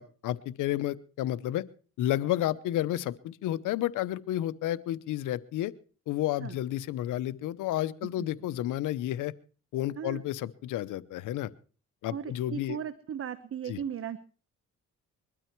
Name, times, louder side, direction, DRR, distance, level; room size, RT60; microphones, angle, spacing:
voice 1, 0.0-1.6 2.0-5.7 6.1-9.3 9.7-11.5 12.0-12.8 13.7-13.8, left 13 dB, 85° left, 16 dB, 0.9 m, -31 dB
voice 2, 12.1-14.2, right 8 dB, 45° right, 14 dB, 1.0 m, -37 dB
22.0 x 12.5 x 4.6 m, 0.40 s
cardioid pair, 90°, 30 cm